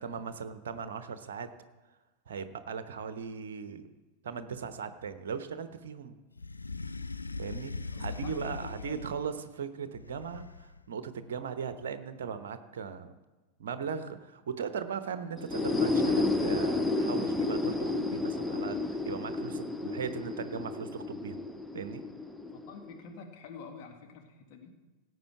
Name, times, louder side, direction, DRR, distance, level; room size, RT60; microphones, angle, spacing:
voice 1, 0.0-1.5 2.3-3.9 4.2-6.1 7.4-13.1 13.6-21.4 21.7-22.0, right 6 dB, 60° right, 11 dB, 0.9 m, -38 dB
sound 1, 6.4-9.4 9.9-10.8, left 3 dB, 80° left, 0.4 m, -40 dB
voice 2, 7.9-9.0 22.5-24.7, left 5 dB, 45° left, 3 dB, 1.8 m, -48 dB
sound 2, 15.4-23.0, left 3 dB, 5° left, 0.7 m, -31 dB
17.0 x 8.0 x 4.7 m, 1.2 s
figure-of-eight pair, 90°, 0 cm